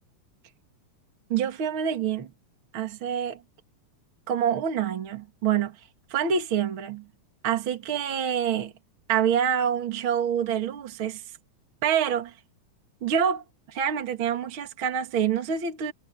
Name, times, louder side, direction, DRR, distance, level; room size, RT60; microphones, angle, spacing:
voice 1, 1.3-2.3 2.7-3.4 4.3-5.8 6.1-7.0 7.4-8.7 9.1-11.2 11.8-12.4 13.0-15.9, right 8 dB, 45° right, 2.7 m, -26 dB
omnidirectional pair, 3.5 m